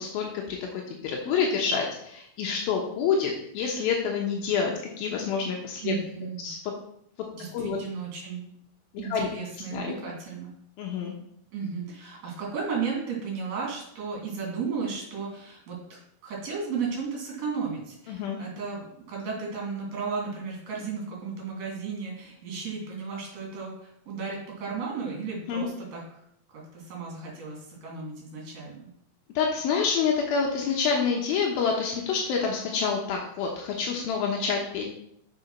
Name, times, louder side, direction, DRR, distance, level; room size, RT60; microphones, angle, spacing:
voice 1, 0.0-5.9 6.4-6.6 7.5-7.8 9.1-9.3 9.7-10.0 10.8-11.1 18.1-18.4 25.5-25.7 29.4-34.9, left 6 dB, 80° left, 0 dB, 2.8 m, -27 dB
voice 2, 5.8-6.5 7.3-8.4 9.0-10.5 11.5-26.0 26.5-28.9, right 5 dB, 50° right, -2 dB, 3.9 m, -34 dB
7.0 x 6.8 x 5.7 m, 0.72 s
omnidirectional pair, 4.3 m